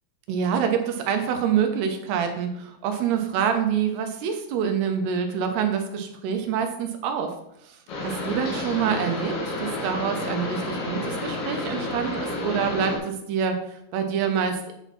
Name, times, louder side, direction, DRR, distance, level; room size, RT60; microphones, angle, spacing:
voice 1, 0.3-7.3 7.6-14.7, right 7 dB, 80° right, 5 dB, 2.5 m, -26 dB
sound 1, 7.9-13.0, left 2 dB, 60° left, 3.5 m, -30 dB
8.0 x 5.8 x 4.2 m, 0.80 s
omnidirectional pair, 5.2 m